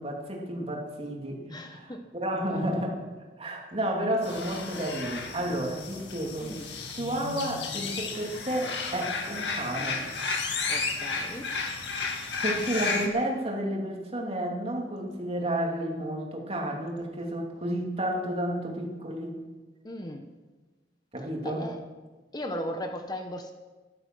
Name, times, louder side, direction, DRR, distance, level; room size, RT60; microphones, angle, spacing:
voice 1, 0.0-3.0 3.4-6.5 6.9-10.0 11.2-11.4 12.4-19.3 21.1-21.6, right 1 dB, 35° right, 0 dB, 2.7 m, -31 dB
voice 2, 1.5-2.1 6.4-6.7 10.7-11.5 19.8-20.3 21.4-21.8 22.3-23.5, equal, 25° left, 5 dB, 0.9 m, -37 dB
sound 1, 4.2-13.1, left 4 dB, 85° left, 2.1 m, -33 dB
13.5 x 12.0 x 6.1 m, 1.3 s
head